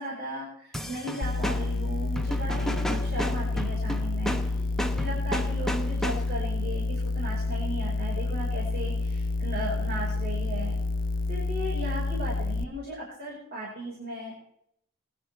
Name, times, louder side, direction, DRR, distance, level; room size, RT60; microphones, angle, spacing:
voice 1, 0.0-4.4 4.9-10.8 11.3-14.3, right 1 dB, 50° right, -5 dB, 5.0 m, -36 dB
sound 1, 0.7-6.5, equal, ahead, 1.1 m, -33 dB
sound 2, 1.2-12.6, left 2 dB, 40° left, 0.6 m, -29 dB
21.5 x 11.5 x 3.5 m, 0.72 s
head